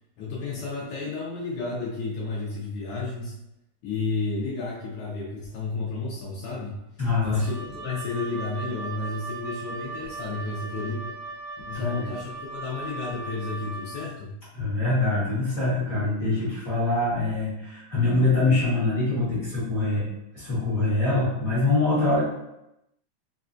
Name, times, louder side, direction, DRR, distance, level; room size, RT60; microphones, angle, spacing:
voice 1, 0.2-3.4 3.8-6.7 7.2-11.2 11.7-14.3, left 3 dB, 90° left, -5 dB, 1.2 m, -32 dB
voice 2, 7.0-7.4 11.7-12.1 14.5-20.0 20.3-22.2, left 2 dB, 50° left, -10 dB, 1.0 m, -24 dB
Wind instrument woodwind instrument, 7.4-14.1, right 3 dB, 80° right, 1.7 m, -38 dB
4.6 x 2.2 x 2.4 m, 0.87 s
omnidirectional pair, 3.3 m